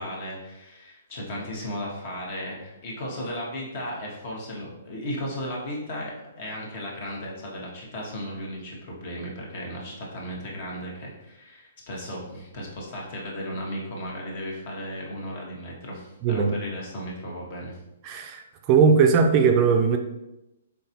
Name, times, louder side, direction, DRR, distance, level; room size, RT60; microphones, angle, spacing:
voice 1, 0.0-17.8, equal, 50° left, -2 dB, 1.3 m, -35 dB
voice 2, 16.2-16.5 18.0-18.4 18.7-20.0, right 5 dB, 35° right, 4 dB, 0.4 m, -19 dB
3.8 x 3.6 x 2.8 m, 0.94 s
hypercardioid pair, 135°, 0 cm